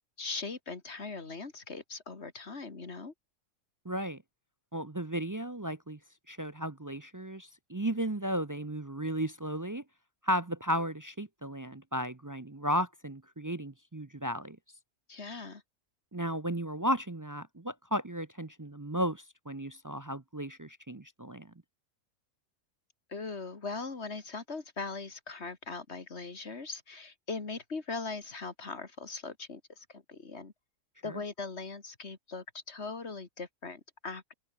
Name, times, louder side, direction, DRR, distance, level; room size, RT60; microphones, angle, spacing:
voice 1, 0.2-3.1 15.1-15.6 23.1-30.5 31.0-34.3, left 4 dB, 55° left, 2.7 m, -40 dB
voice 2, 3.8-4.2 4.7-6.0 6.3-9.8 10.2-14.6 16.1-21.5 31.0-31.2, equal, 20° right, 0.5 m, -34 dB
open air
omnidirectional pair, 1.4 m